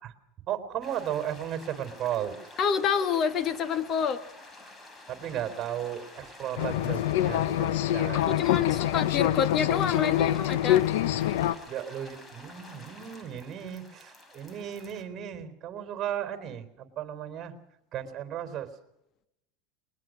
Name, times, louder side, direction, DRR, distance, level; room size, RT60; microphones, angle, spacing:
voice 1, 0.5-2.4 5.1-8.3 11.7-17.5 17.9-18.7, right 10 dB, 35° right, 9 dB, 3.9 m, -35 dB
sound 1, 0.8-15.0, left 2 dB, 20° left, 3.9 m, -49 dB
voice 2, 2.6-4.2 8.1-10.9, left 7 dB, 40° left, 10 dB, 1.8 m, -28 dB
sound 2, 6.6-11.5, left 12 dB, 80° left, 1.1 m, -25 dB
21.5 x 20.5 x 6.3 m, 0.86 s
supercardioid pair, 115°, 0 cm